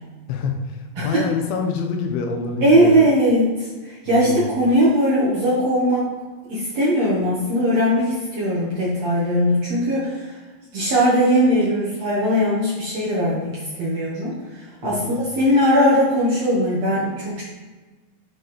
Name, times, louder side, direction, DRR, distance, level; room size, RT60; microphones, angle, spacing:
voice 1, 0.3-3.1 4.1-4.5 14.8-15.2, left 5 dB, 90° left, 3 dB, 2.1 m, -26 dB
voice 2, 2.6-6.1 6.5-10.3 10.7-14.3 14.8-17.4, equal, 75° right, -7 dB, 1.5 m, -19 dB
7.8 x 4.3 x 3.2 m, 1.3 s
omnidirectional pair, 5.0 m